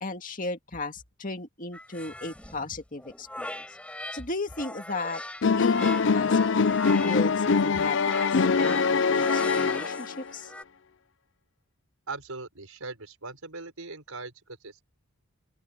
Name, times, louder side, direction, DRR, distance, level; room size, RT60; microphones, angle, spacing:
voice 1, 0.0-3.6 4.1-8.2 8.6-10.5, left 2 dB, 40° left, 2.2 m, -36 dB
sound 1, 1.7-4.2 4.5-10.6, left 1 dB, 5° left, 7.3 m, -41 dB
sound 2, 5.4-10.3, left 5 dB, 55° left, 0.5 m, -23 dB
voice 2, 12.1-14.8, right 3 dB, 80° right, 4.7 m, -40 dB
open air
head